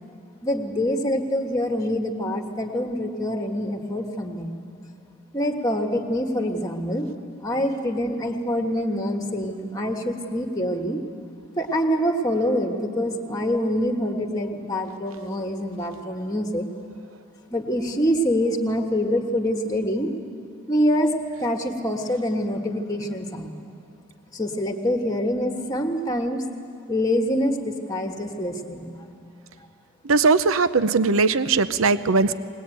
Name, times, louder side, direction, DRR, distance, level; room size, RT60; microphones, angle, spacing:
voice 1, 0.4-4.5 5.3-7.1 7.4-11.0 11.6-16.7 17.5-20.1 20.7-21.1 21.4-23.5 24.3-26.4 26.9-28.9, equal, 15° left, 4 dB, 1.5 m, -25 dB
voice 2, 30.0-32.3, right 4 dB, 80° right, 13 dB, 0.8 m, -19 dB
20.5 x 20.0 x 9.1 m, 2.5 s
head